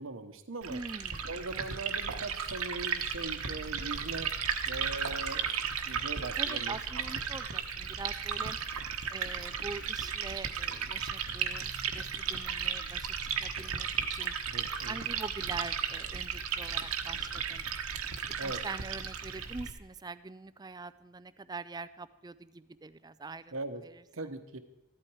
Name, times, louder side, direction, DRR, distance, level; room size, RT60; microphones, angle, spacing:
voice 1, 0.0-0.8 1.3-4.3 4.6-5.5 5.8-6.8 14.5-15.0 18.4-18.6 23.5-23.8 24.1-24.6, right 2 dB, 65° right, 9 dB, 1.0 m, -40 dB
Liquid, 0.6-19.7, right 7 dB, 85° right, 1.2 m, -35 dB
voice 2, 0.7-1.3 6.4-8.6 9.1-14.3 14.9-17.6 18.2-23.6 23.9-24.0, right 3 dB, 20° right, 15 dB, 0.4 m, -44 dB
14.5 x 12.0 x 4.8 m, 0.93 s
head